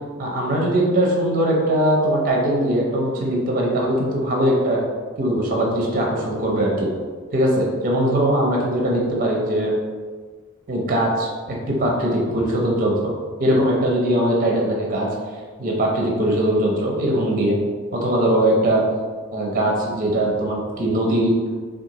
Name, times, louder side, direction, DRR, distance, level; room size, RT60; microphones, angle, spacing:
voice 1, 0.2-4.8 5.2-6.9 7.3-9.7 10.7-13.1 13.4-15.1 15.6-17.6 17.9-18.8 19.3-21.3, right 1 dB, 40° right, -2 dB, 0.6 m, -20 dB
3.6 x 2.3 x 2.9 m, 1.5 s
head